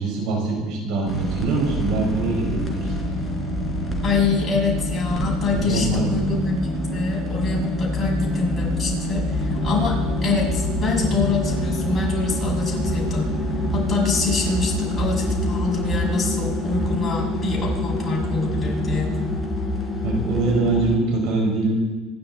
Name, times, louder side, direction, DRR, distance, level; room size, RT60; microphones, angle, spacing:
voice 1, 0.0-2.9 5.7-6.1 20.0-21.8, right 3 dB, 65° right, 1 dB, 5.4 m, -23 dB
sound 1, 1.1-21.0, left 1 dB, 10° right, 4.1 m, -25 dB
voice 2, 4.0-13.3 13.7-19.2, left 4 dB, 20° left, -4 dB, 6.5 m, -25 dB
26.5 x 11.5 x 4.1 m, 1.2 s
supercardioid pair, 115°, 0 cm